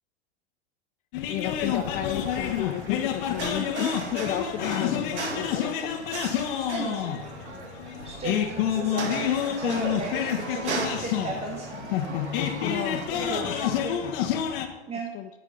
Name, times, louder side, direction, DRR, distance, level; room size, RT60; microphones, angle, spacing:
sound 1, 1.1-14.7, left 9 dB, 50° left, 1.5 m, -29 dB
voice 1, 1.3-6.0 12.6-13.0 13.3-13.5 15.1-15.3, left 12 dB, 25° left, 9 dB, 0.4 m, -33 dB
sound 2, 1.6-13.1, right 4 dB, 80° right, 2.1 m, -38 dB
voice 2, 6.7-7.0 8.0-11.7 12.1-12.2 13.1-14.0 14.9-15.1, right 3 dB, 20° right, -1 dB, 1.5 m, -35 dB
8.7 x 7.7 x 5.6 m, 1.1 s
hypercardioid pair, 115°, 34 cm